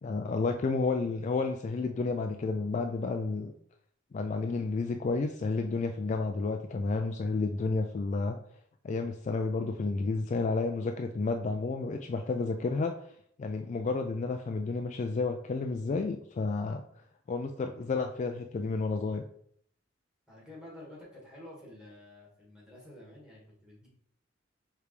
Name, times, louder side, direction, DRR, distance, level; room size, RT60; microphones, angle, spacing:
voice 1, 0.0-3.5 4.1-8.4 8.8-12.9 13.4-16.8 17.3-19.2, left 3 dB, 40° left, 5 dB, 0.3 m, -31 dB
voice 2, 20.3-23.9, left 1 dB, 5° right, -5 dB, 1.8 m, -50 dB
4.9 x 3.3 x 3.2 m, 0.64 s
head